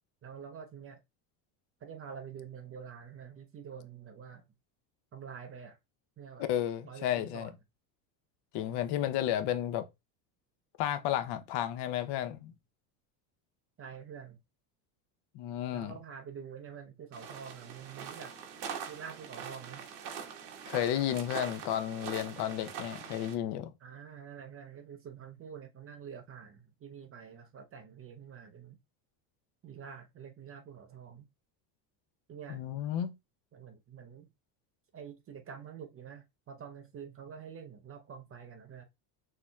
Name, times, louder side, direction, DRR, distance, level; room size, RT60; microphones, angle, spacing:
voice 1, 0.2-1.0 1.8-4.4 5.1-5.8 6.2-6.5 6.8-7.5 13.8-14.4 15.7-18.3 18.9-19.9 23.8-28.8 29.6-31.2 32.3-32.6 33.5-34.3 34.9-38.8, right 7 dB, 30° right, 0.7 m, -47 dB
voice 2, 6.5-7.5 8.5-9.9 10.8-12.5 15.3-15.9 20.7-23.7 32.5-33.2, left 11 dB, 55° left, 0.8 m, -32 dB
sound 1, 17.1-23.3, right 7 dB, 55° right, 1.5 m, -43 dB
6.5 x 2.9 x 2.3 m
supercardioid pair, 125°, 48 cm